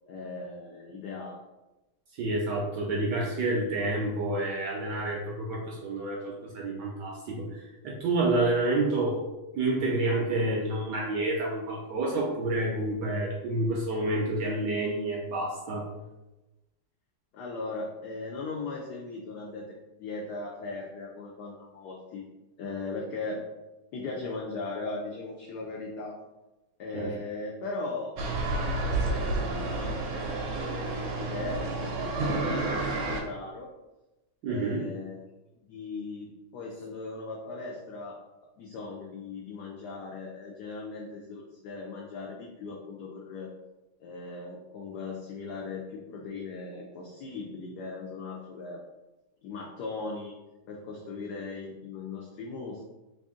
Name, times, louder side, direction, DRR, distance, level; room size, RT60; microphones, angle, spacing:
voice 1, 0.1-1.4 17.3-22.2 22.6-23.4 23.9-26.2 26.8-28.1 28.5-33.7 34.4-35.2 35.7-38.2 38.6-43.5 44.0-48.8 49.4-50.3 50.7-52.9, left 3 dB, 75° left, -1 dB, 0.9 m, -38 dB
voice 2, 2.1-9.2 9.5-15.9 26.9-27.1 34.4-34.8, right 2 dB, 70° right, -2 dB, 1.1 m, -29 dB
sound 1, 28.2-33.2, right 2 dB, 90° right, 1.5 m, -30 dB
3.4 x 2.6 x 3.6 m, 1.0 s
omnidirectional pair, 2.3 m